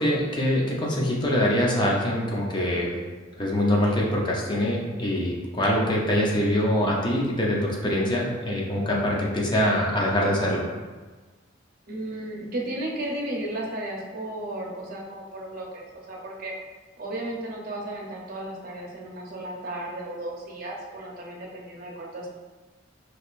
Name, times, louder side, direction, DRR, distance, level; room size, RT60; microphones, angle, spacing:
voice 1, 0.0-3.0 3.4-10.7, left 1 dB, 25° left, -3 dB, 0.7 m, -24 dB
voice 2, 11.9-16.5 17.0-22.3, right 1 dB, 50° right, -2 dB, 0.8 m, -34 dB
4.9 x 3.1 x 2.5 m, 1.3 s
head